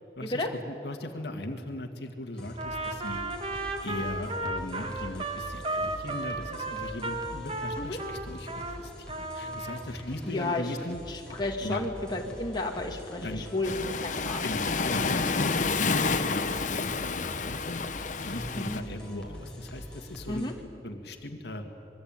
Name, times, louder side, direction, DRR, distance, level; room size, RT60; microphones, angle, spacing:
voice 1, 0.2-3.2 3.8-11.0 11.6-11.8 13.2-13.4 14.4-20.4 20.8-21.6, left 1 dB, 65° left, 4 dB, 1.9 m, -38 dB
sound 1, 2.4-20.5, equal, 5° left, 4.5 m, -44 dB
Trumpet, 2.5-8.8 9.1-9.8, right 2 dB, 30° right, 2.0 m, -34 dB
voice 2, 10.2-10.7 11.1-14.8 18.6-18.8 20.3-20.5, left 2 dB, 25° left, 0 dB, 2.5 m, -32 dB
Waves surf, 13.6-18.8, left 4 dB, 45° left, 1.0 m, -29 dB
25.5 x 22.5 x 8.9 m, 2.8 s
head